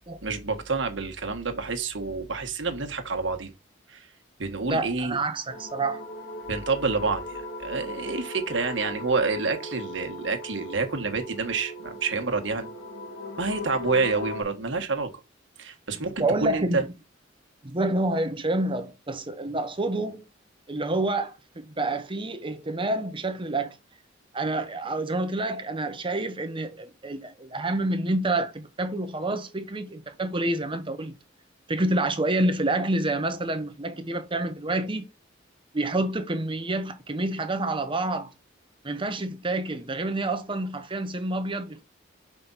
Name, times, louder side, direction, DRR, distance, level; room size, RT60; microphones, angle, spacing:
voice 1, 0.2-3.5 3.9-4.1 4.4-5.2 6.5-12.7 13.4-15.1 15.6-16.8, right 4 dB, 65° right, 1.5 m, -28 dB
voice 2, 4.7-6.0 16.0-16.9 17.6-20.2 20.7-23.8 24.3-31.1 31.7-35.1 35.7-38.3 38.8-41.8, right 2 dB, 25° right, 1.0 m, -28 dB
sound 1, 5.5-14.4, left 1 dB, 80° left, 2.1 m, -38 dB
5.9 x 5.2 x 4.1 m
head